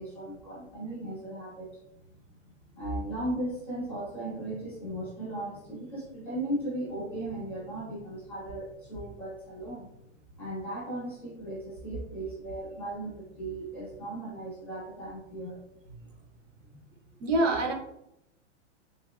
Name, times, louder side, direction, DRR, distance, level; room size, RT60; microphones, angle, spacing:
voice 1, 0.0-1.8 2.7-9.9 10.4-15.6 16.0-16.1, right 1 dB, 5° left, -11 dB, 0.5 m, -37 dB
voice 2, 17.2-17.7, right 2 dB, 80° right, 1 dB, 1.0 m, -25 dB
3.6 x 2.7 x 2.5 m, 0.82 s
hypercardioid pair, 165°, 37 cm